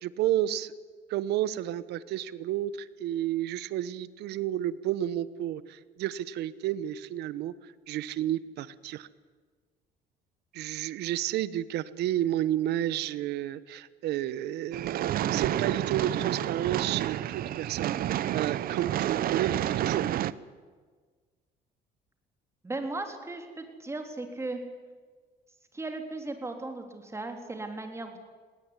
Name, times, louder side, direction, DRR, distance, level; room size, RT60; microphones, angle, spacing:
voice 1, 0.0-0.7 1.1-7.5 7.9-9.1 10.5-17.9 18.3-20.0, right 12 dB, 80° right, 16 dB, 1.1 m, -31 dB
sound 1, 14.7-20.3, right 12 dB, 60° right, 0.8 m, -29 dB
voice 2, 22.6-24.6 25.7-28.2, right 2 dB, 15° right, 5 dB, 3.7 m, -36 dB
19.0 x 19.0 x 9.9 m, 1.5 s
cardioid pair, 110°, 17 cm